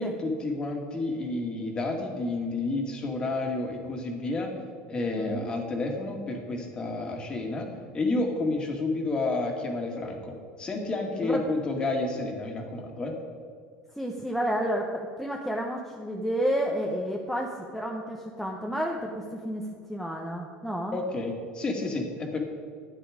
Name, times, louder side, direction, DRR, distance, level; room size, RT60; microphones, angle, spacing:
voice 1, 0.0-4.5 4.9-13.1 20.9-22.4, left 2 dB, 20° left, 2 dB, 1.9 m, -30 dB
voice 2, 5.2-5.5 11.2-11.6 14.0-21.0, equal, ahead, -1 dB, 0.8 m, -31 dB
12.5 x 9.4 x 5.0 m, 2.1 s
cardioid pair, 150°, 4 cm